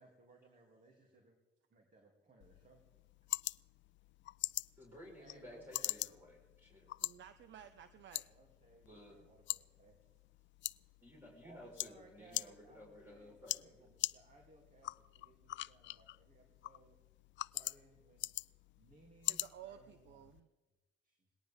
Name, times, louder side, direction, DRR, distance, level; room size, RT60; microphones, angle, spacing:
voice 1, 0.0-1.4 1.7-2.8 5.2-6.1 8.3-10.0 11.4-17.0 17.4-18.2 18.8-20.3 21.0-21.2, right 2 dB, 40° right, 1 dB, 3.0 m, -63 dB
sound 1, 2.4-20.4, left 15 dB, 70° left, 0.4 m, -44 dB
voice 2, 4.8-6.9 8.8-9.3 11.0-13.9, left 1 dB, 10° right, -3 dB, 5.1 m, -56 dB
voice 3, 7.0-8.3 19.3-20.5, right 10 dB, 65° right, 11 dB, 0.9 m, -54 dB
20.0 x 18.0 x 3.7 m, 1.1 s
cardioid pair, 90°, 20 cm